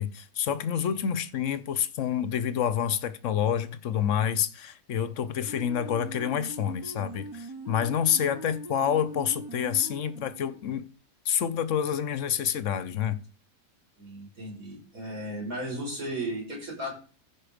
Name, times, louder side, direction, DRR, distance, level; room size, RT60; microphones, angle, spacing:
voice 1, 0.0-10.9 11.3-13.2, left 9 dB, 60° left, 1.0 m, -28 dB
sound 1, 5.5-10.7, right 2 dB, 25° right, 0.4 m, -41 dB
voice 2, 14.0-16.9, right 1 dB, 55° right, 5.7 m, -35 dB
15.0 x 5.1 x 5.1 m
omnidirectional pair, 1.7 m